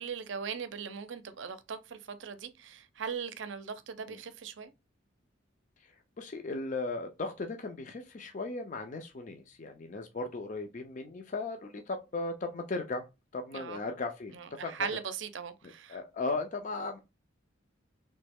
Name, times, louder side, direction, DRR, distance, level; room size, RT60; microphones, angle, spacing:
voice 1, 0.0-4.7 13.5-13.8 14.3-16.0, right 6 dB, 65° right, 0.5 m, -39 dB
voice 2, 5.8-13.0 13.3-14.9 15.6-17.0, left 3 dB, 40° left, 0.4 m, -37 dB
3.1 x 3.0 x 3.4 m
head